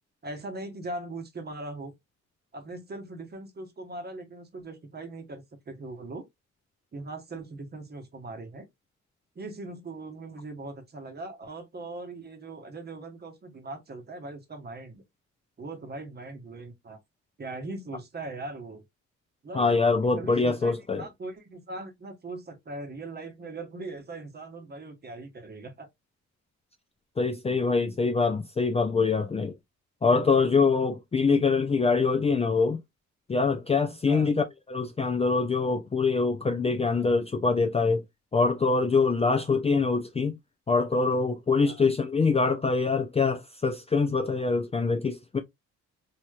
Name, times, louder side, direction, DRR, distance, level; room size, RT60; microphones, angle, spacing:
voice 1, 0.2-1.9 2.5-6.3 6.9-8.7 9.4-15.0 15.6-17.0 17.4-18.8 19.4-19.8 20.2-25.9 34.1-34.3 41.6-41.9, right 2 dB, 35° right, 1.0 m, -40 dB
voice 2, 19.5-21.0 27.2-29.5 30.0-32.8 33.3-38.0 38.3-40.4 40.7-45.4, left 4 dB, 20° left, 0.4 m, -24 dB
3.1 x 2.8 x 2.3 m
cardioid pair, 90°, 30 cm